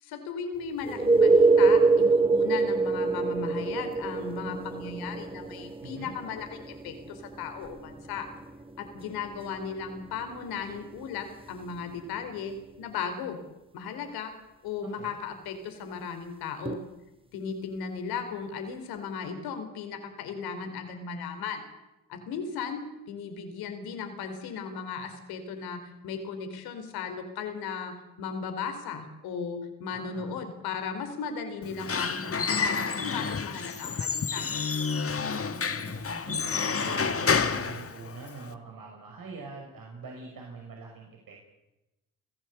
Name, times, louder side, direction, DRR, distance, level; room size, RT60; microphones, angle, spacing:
voice 1, 0.0-8.3 8.8-13.4 13.7-14.3 14.6-16.8 17.3-21.6 22.1-34.5, left 6 dB, 80° left, 7 dB, 4.4 m, -36 dB
sound 1, 0.8-12.4 16.7-16.8, right 3 dB, 15° right, 2.1 m, -26 dB
voice 2, 5.8-6.1 14.8-15.1 29.9-30.3 35.2-41.5, right 4 dB, 65° right, 0 dB, 5.7 m, -44 dB
Squeak / Wood, 31.6-38.5, left 5 dB, 40° left, 1.9 m, -29 dB
30.0 x 16.0 x 8.4 m, 1.0 s
hypercardioid pair, 45°, 37 cm